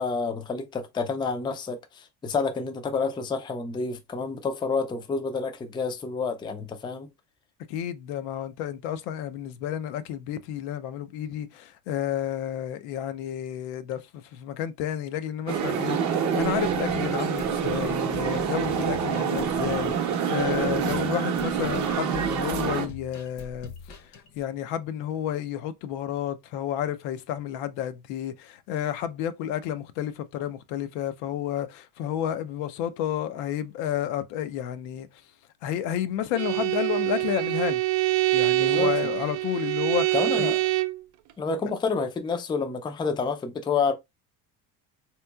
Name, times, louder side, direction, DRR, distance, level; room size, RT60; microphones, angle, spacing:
voice 1, 0.0-7.1 20.7-20.9 38.6-38.9 40.1-40.6 41.4-43.9, left 4 dB, 10° left, 0.3 m, -29 dB
voice 2, 7.7-35.2 35.6-37.8 38.3-40.5, left 10 dB, 85° left, 0.6 m, -31 dB
sound 1, 15.5-22.9, right 7 dB, 40° right, 0.7 m, -26 dB
sound 2, 16.1-24.4, left 3 dB, 40° left, 0.7 m, -43 dB
Bowed string instrument, 36.3-41.0, right 19 dB, 80° right, 0.5 m, -25 dB
3.5 x 2.9 x 2.2 m
cardioid pair, 110°, 44 cm